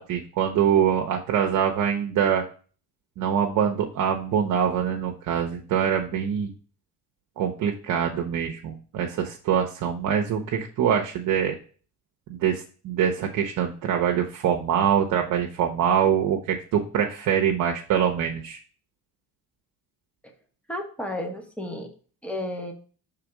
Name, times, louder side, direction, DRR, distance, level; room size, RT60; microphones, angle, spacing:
voice 1, 0.0-2.4 3.2-6.5 7.4-11.6 12.3-18.6, right 8 dB, 60° right, 2 dB, 0.9 m, -24 dB
voice 2, 20.7-21.9 22.2-22.7, left 1 dB, 5° left, 4 dB, 1.1 m, -32 dB
5.8 x 3.6 x 4.8 m, 0.39 s
cardioid pair, 135°, 36 cm